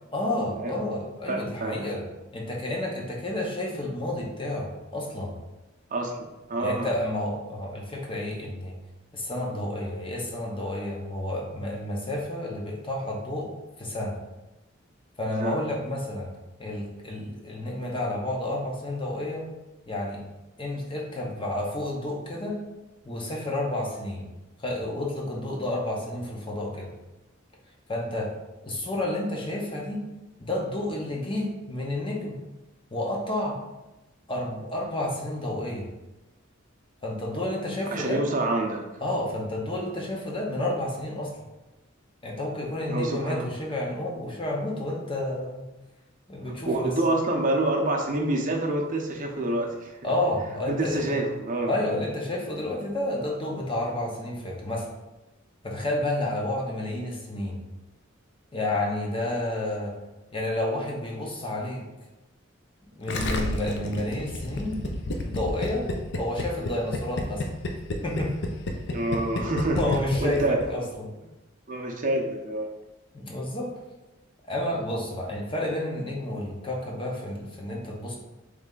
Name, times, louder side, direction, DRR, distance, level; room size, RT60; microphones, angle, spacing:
voice 1, 0.1-2.0 2.3-5.3 6.6-8.8 9.1-13.5 13.8-14.2 15.2-16.3 16.6-19.4 19.9-20.2 20.6-22.6 23.0-24.2 24.6-26.9 27.9-28.3 28.6-30.0 30.4-32.4 32.9-33.6 34.3-35.9 37.0-38.2 39.0-41.3 42.2-45.6 46.3-46.9 50.0-51.1 51.6-54.9 55.6-57.6 58.5-59.9 60.3-61.8 63.0-64.8 65.2-65.9 66.2-67.4 68.0-68.3 69.8-71.1 73.1-73.7 74.5-78.2, left 1 dB, 25° left, -1 dB, 0.7 m, -30 dB
voice 2, 1.3-1.9 5.9-6.9 15.3-15.6 37.9-38.8 42.9-43.5 46.7-49.9 50.7-51.7 68.9-69.9 70.2-70.6 71.7-72.7, right 2 dB, 40° right, 1 dB, 0.6 m, -27 dB
Gurgling, 63.1-70.7 70.9-71.0, left 2 dB, 60° left, 0.5 m, -30 dB
3.3 x 3.2 x 3.8 m, 1.0 s
head